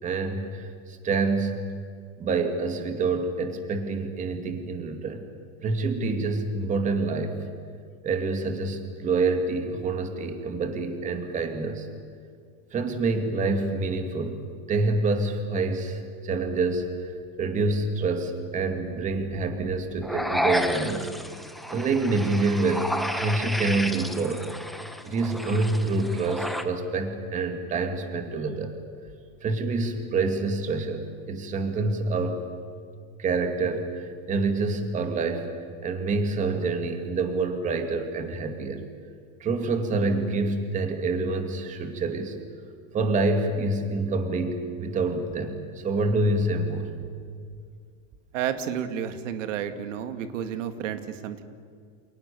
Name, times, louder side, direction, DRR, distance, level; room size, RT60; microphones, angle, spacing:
voice 1, 0.0-1.7 2.2-5.2 5.6-7.5 8.0-11.9 12.7-14.4 14.7-21.1 21.7-24.5 25.0-28.7 29.4-32.4 33.2-35.5 35.8-38.8 39.4-42.4 42.9-46.9, right 3 dB, 20° right, 6 dB, 2.4 m, -27 dB
sound 1, 20.0-26.6, left 1 dB, ahead, 1.0 m, -31 dB
voice 2, 48.3-51.4, right 9 dB, 80° right, 8 dB, 2.5 m, -31 dB
30.0 x 28.5 x 7.0 m, 2.2 s
supercardioid pair, 170°, 37 cm